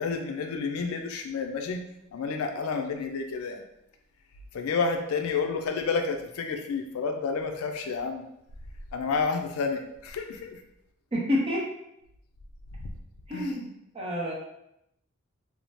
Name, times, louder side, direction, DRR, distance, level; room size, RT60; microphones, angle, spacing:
voice 1, 0.0-1.8 2.1-3.6 4.5-8.3 8.9-10.6 13.3-13.5, left 4 dB, 75° left, 5 dB, 0.4 m, -30 dB
voice 2, 11.1-11.6 13.3-13.7 13.9-14.3, left 1 dB, 30° right, -3 dB, 0.7 m, -28 dB
2.7 x 2.0 x 3.0 m, 0.79 s
head